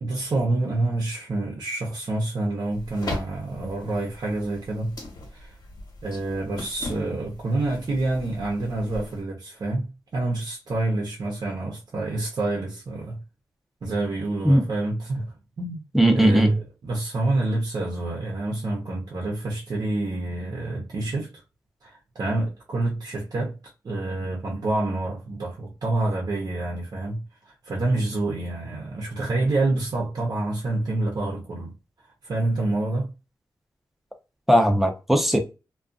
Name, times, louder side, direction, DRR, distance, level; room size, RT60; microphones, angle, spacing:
voice 1, 0.0-4.9 5.3-5.5 6.0-13.2 13.8-15.8 16.1-21.3 21.8-23.5 23.8-27.2 27.6-31.7 32.2-33.1, right 2 dB, 55° right, 0.7 m, -27 dB
sound 1, 2.7-9.2, left 2 dB, 60° left, 1.2 m, -39 dB
voice 2, 15.9-16.5 34.5-35.4, right 1 dB, 5° right, 0.6 m, -18 dB
2.4 x 2.3 x 2.4 m
cardioid pair, 85°, 8 cm